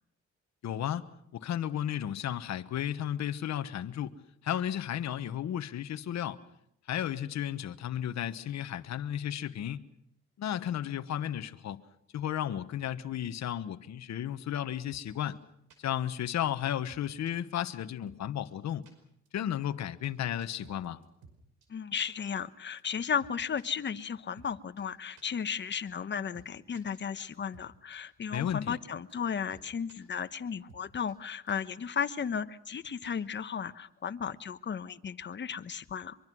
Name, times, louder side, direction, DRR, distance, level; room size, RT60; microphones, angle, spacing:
voice 1, 0.6-1.0 1.3-4.1 4.4-6.4 6.9-9.8 10.4-11.8 12.1-15.4 15.8-18.8 19.3-21.0 28.3-28.8, left 10 dB, 65° left, 1.2 m, -33 dB
sound 1, 14.9-15.0 15.3-15.4 15.7-15.8 16.1-16.2 16.5-16.6 16.9-17.3 17.7-17.8 18.1-18.2 18.5-18.6 18.8-18.9 19.3-19.4 19.6-19.7 20.0-20.1 20.4-21.4 21.6-21.7 22.0-22.1 22.4-22.5 22.8-22.9 23.2-23.7 24.0-24.1 24.4-24.5 24.8-24.9 25.2-25.3 25.6-25.7 26.0-26.1 26.3-26.5 26.7-27.7 27.9-28.0 28.3-28.4 28.7-28.8 29.1-29.2 29.5-30.0 30.3-30.4 30.7-30.8 31.1-31.2 31.5-31.6 31.9-32.0 32.3-32.4 32.7-32.8 33.0-33.3, right 5 dB, 75° right, 5.4 m, -56 dB
voice 2, 21.7-36.2, left 7 dB, 35° left, 1.1 m, -35 dB
24.0 x 23.5 x 6.2 m
cardioid pair, 90°, 30 cm